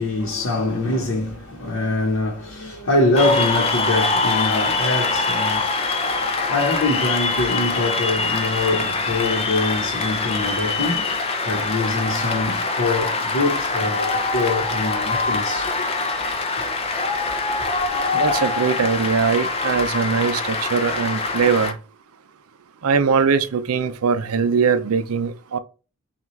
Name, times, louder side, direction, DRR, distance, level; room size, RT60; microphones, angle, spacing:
voice 1, 0.0-15.8 17.6-17.7 18.6-18.9, left 2 dB, 70° left, 1.0 m, -24 dB
Cheering / Applause, 3.1-21.7, left 3 dB, 25° left, 0.5 m, -24 dB
voice 2, 18.1-21.7 22.8-25.6, right 5 dB, 75° right, 0.5 m, -21 dB
5.8 x 2.4 x 3.1 m
head